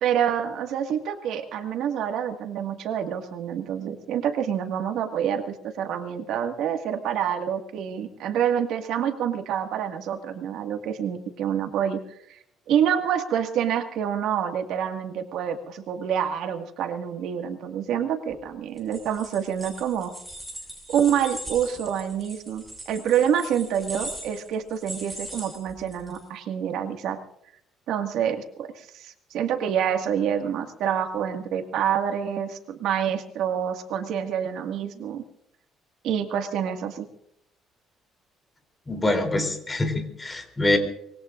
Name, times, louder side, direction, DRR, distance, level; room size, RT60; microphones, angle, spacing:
voice 1, 0.0-12.0 12.3-12.4 12.7-20.1 20.9-27.2 27.9-35.2 36.0-37.1, right 9 dB, 70° right, 5 dB, 1.9 m, -27 dB
sound 1, 18.8-26.2, right 1 dB, 5° right, 6.5 m, -40 dB
voice 2, 38.9-40.8, left 2 dB, 15° left, 5 dB, 3.4 m, -25 dB
25.0 x 22.0 x 2.6 m, 0.74 s
cardioid pair, 145°, 0 cm